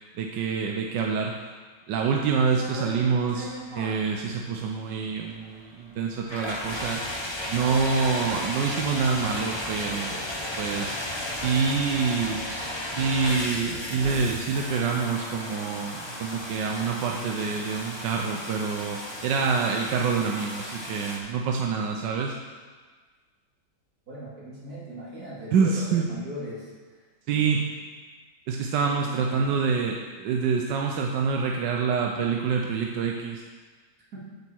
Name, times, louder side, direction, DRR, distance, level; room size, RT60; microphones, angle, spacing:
voice 1, 0.2-1.4 1.9-7.1 7.5-11.0 11.3-12.5 12.9-22.4 25.5-26.0 27.3-27.6 28.5-33.4, right 5 dB, 90° right, 1 dB, 1.4 m, -26 dB
sound 1, 2.2-21.2, left 1 dB, 20° left, 0.8 m, -35 dB
voice 2, 24.1-26.7 27.3-27.6 28.8-29.6 34.1-34.2, equal, 60° right, -7 dB, 3.1 m, -40 dB
8.4 x 8.1 x 4.5 m, 1.4 s
omnidirectional pair, 1.9 m